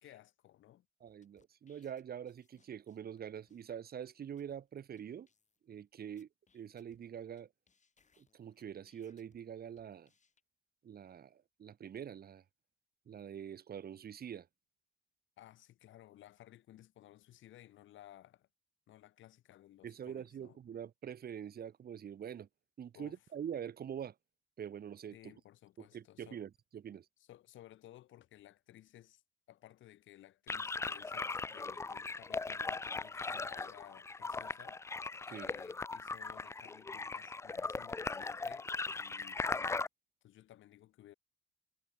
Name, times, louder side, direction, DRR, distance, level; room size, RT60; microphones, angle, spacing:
voice 1, 0.0-0.9 15.4-18.5 18.9-20.6 22.9-23.2 25.1-26.4 27.3-29.2 29.5-34.8 35.3-39.8 40.2-41.1, left 13 dB, 80° left, 1.8 m, -58 dB
voice 2, 1.0-5.3 5.6-6.3 6.5-7.5 8.2-10.1 10.8-12.4 13.1-14.5 19.8-22.5 22.8-24.1 24.6-25.3 25.8-27.1 35.3-35.5, right 8 dB, 50° right, 1.2 m, -45 dB
sound 1, 1.1-3.2 3.5-3.6 4.1-4.2 4.4-4.6 5.0-5.1 5.3-5.8 6.2-7.4 7.7-9.4 9.8-10.4, left 5 dB, 35° left, 4.5 m, -74 dB
sound 2, 30.5-39.9, left 3 dB, 15° left, 0.3 m, -39 dB
cardioid pair, 90°, 20 cm